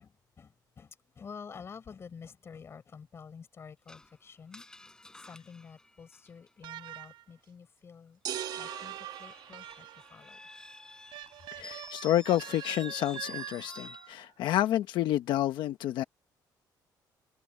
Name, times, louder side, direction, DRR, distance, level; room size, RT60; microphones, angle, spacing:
voice 1, 0.0-4.7 5.2-8.2 8.6-10.4, left 6 dB, 35° left, 5.4 m, -49 dB
Screech, 3.9-6.8 8.4-14.1, left 2 dB, 10° left, 7.8 m, -50 dB
sound 1, 6.6-7.3 8.3-10.2 11.1-14.3, right 15 dB, 90° right, 6.3 m, -45 dB
sound 2, 8.3-10.3, right 10 dB, 60° right, 2.0 m, -40 dB
voice 2, 11.5-16.0, left 13 dB, 80° left, 1.1 m, -29 dB
cardioid pair, 150°, 8 cm